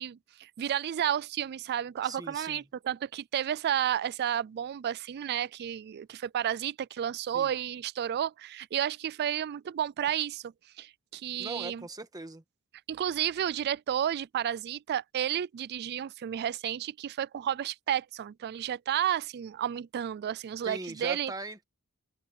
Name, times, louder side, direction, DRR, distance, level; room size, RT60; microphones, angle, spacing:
voice 1, 0.0-11.8 12.9-21.3, right 10 dB, 45° right, 0.3 m, -32 dB
voice 2, 2.0-2.6 7.3-7.5 11.4-12.4 20.6-21.6, right 2 dB, 15° right, 1.4 m, -40 dB
head